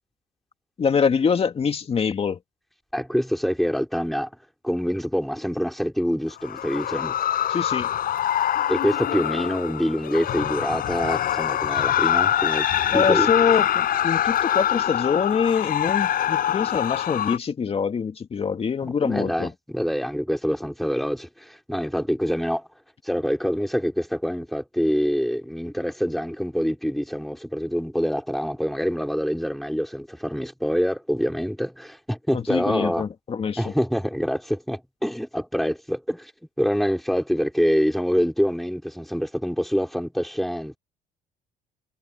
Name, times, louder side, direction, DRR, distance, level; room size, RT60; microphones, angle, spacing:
voice 1, 0.8-2.4 7.5-7.9 12.9-19.5 32.3-33.7, left 6 dB, 35° left, 2.3 m, -24 dB
voice 2, 2.9-4.3 4.6-7.1 8.7-12.7 12.9-13.3 18.8-22.7 23.0-33.0 33.6-36.3 36.6-40.8, equal, ahead, 6.1 m, -25 dB
sound 1, 6.3-17.4, left 11 dB, 60° left, 7.6 m, -24 dB
cardioid pair, 110°, 17 cm